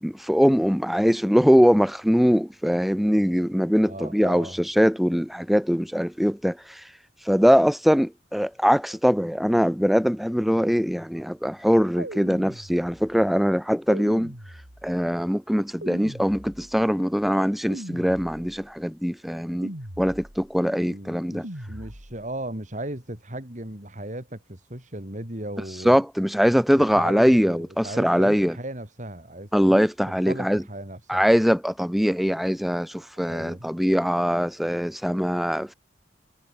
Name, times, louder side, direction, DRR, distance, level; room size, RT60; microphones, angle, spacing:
voice 1, 0.0-6.8 7.3-14.3 14.8-21.4 25.8-28.5 29.5-30.6 31.1-35.7, equal, ahead, 1.5 m, -22 dB
voice 2, 3.8-4.6 20.8-26.0 26.8-29.8 30.1-31.2 33.2-33.7, right 1 dB, 40° right, 3.8 m, -37 dB
sound 1, 12.0-13.2 13.9-15.1 15.8-16.9 17.7-18.7 19.6-20.6 21.4-22.3, right 1 dB, 70° right, 7.0 m, -40 dB
head